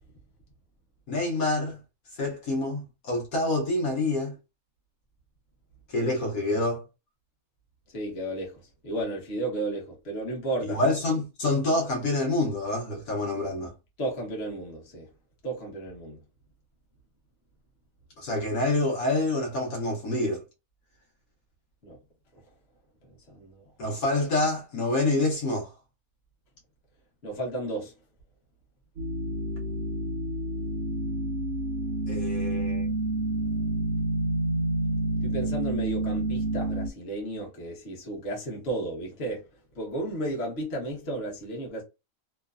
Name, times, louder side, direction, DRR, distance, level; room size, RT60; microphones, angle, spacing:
voice 1, 1.1-1.8 2.2-4.4 5.9-6.8 10.7-13.7 18.2-20.4 23.8-25.7 32.1-32.9, left 2 dB, 75° left, 1.3 m, -27 dB
voice 2, 7.9-10.8 14.0-15.1 15.4-16.2 21.8-22.0 23.1-23.6 27.2-27.9 35.2-39.5 39.7-41.8, right 1 dB, 45° left, 1.2 m, -33 dB
sound 1, 29.0-36.9, right 1 dB, 65° right, 0.7 m, -29 dB
3.1 x 2.1 x 2.4 m
omnidirectional pair, 1.6 m